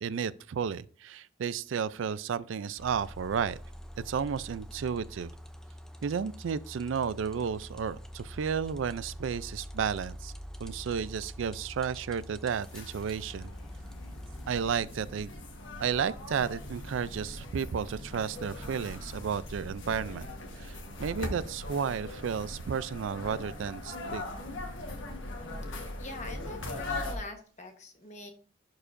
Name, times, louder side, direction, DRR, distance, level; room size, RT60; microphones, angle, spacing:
voice 1, 0.0-3.6 4.1-5.3 6.0-10.3 10.6-13.5 14.5-15.3 15.8-20.3 20.6-24.2, right 7 dB, 85° right, 0.4 m, -32 dB
sound 1, 2.8-14.8, equal, 5° left, 0.4 m, -45 dB
sound 2, 12.1-27.2, left 2 dB, 85° left, 1.3 m, -40 dB
voice 2, 26.0-28.3, left 2 dB, 35° left, 1.1 m, -44 dB
11.0 x 4.8 x 2.6 m
head